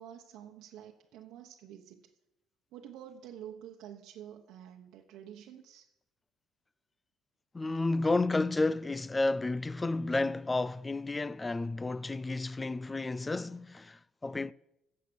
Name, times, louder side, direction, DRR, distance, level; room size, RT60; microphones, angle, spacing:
voice 1, 0.0-2.1 2.7-5.9, right 10 dB, 70° right, 1.0 m, -49 dB
voice 2, 7.5-14.5, left 2 dB, 15° left, 0.4 m, -31 dB
16.0 x 7.5 x 6.8 m
cardioid pair, 140°, 0 cm